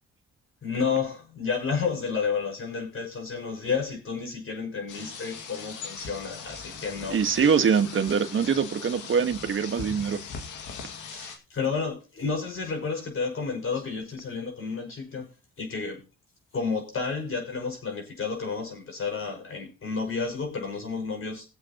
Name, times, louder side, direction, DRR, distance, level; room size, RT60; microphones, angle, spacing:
voice 1, 0.6-7.2 11.1-15.3 15.6-16.0 16.5-21.4, left 5 dB, 45° left, 5.5 m, -31 dB
sound 1, 4.9-11.4, left 5 dB, 85° left, 2.1 m, -40 dB
voice 2, 7.1-10.2, right 6 dB, 40° right, 1.5 m, -24 dB
20.0 x 7.7 x 3.0 m
cardioid pair, 90°, 30 cm